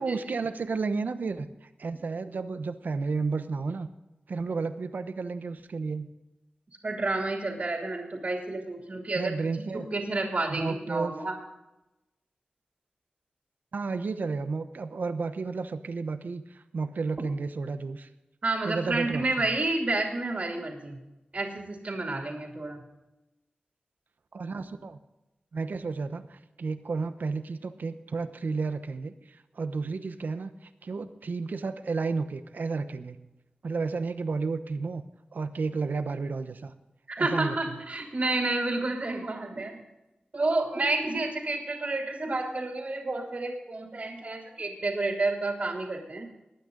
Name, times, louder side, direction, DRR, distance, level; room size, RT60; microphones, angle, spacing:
voice 1, 0.0-3.9 4.3-6.1 9.1-9.9 10.5-11.1 13.7-18.1 18.6-19.6 24.3-25.0 25.5-30.5 30.8-33.2 33.6-35.0 35.3-36.7 37.2-37.8, right 4 dB, 80° right, 10 dB, 1.0 m, -32 dB
voice 2, 6.8-9.3 9.7-11.3 18.4-21.0 21.3-22.8 37.1-39.8 40.3-46.3, right 2 dB, 55° right, 2 dB, 2.8 m, -30 dB
21.0 x 9.2 x 3.9 m, 0.98 s
wide cardioid pair, 90°, 3 cm